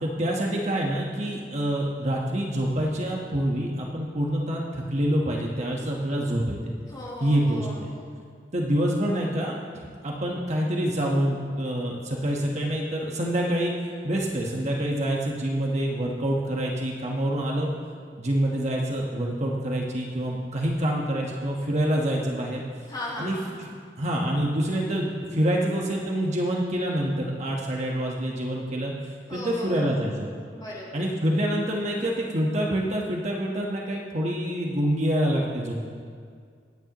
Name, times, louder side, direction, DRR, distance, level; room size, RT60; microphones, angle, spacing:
voice 1, 0.0-6.7 7.2-7.9 8.5-9.5 10.0-13.7 14.0-17.7 18.2-22.6 23.2-23.7 24.0-28.9 29.3-30.3 30.9-35.7, right 1 dB, 40° right, -2 dB, 1.3 m, -26 dB
voice 2, 6.9-7.8 22.9-23.5 29.3-29.9 30.5-31.0, left 1 dB, 25° left, -6 dB, 4.1 m, -37 dB
26.0 x 9.9 x 3.0 m, 2.1 s
head